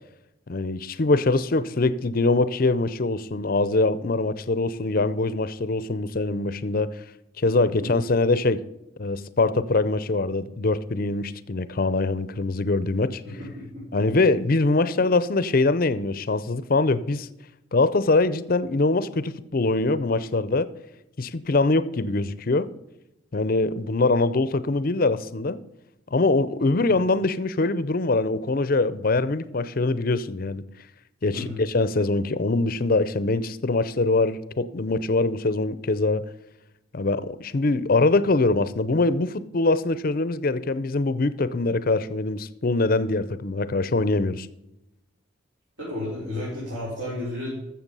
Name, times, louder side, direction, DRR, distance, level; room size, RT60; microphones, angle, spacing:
voice 1, 0.5-6.9 7.4-8.6 9.0-13.2 13.9-17.3 17.7-20.7 21.2-22.7 23.3-25.6 26.1-30.6 31.2-36.2 36.9-44.5, left 3 dB, 45° left, 0.6 m, -23 dB
voice 2, 13.2-13.8 26.8-26.9 31.3-31.6 45.8-47.5, left 1 dB, 65° right, 4.9 m, -32 dB
13.5 x 7.2 x 5.5 m
head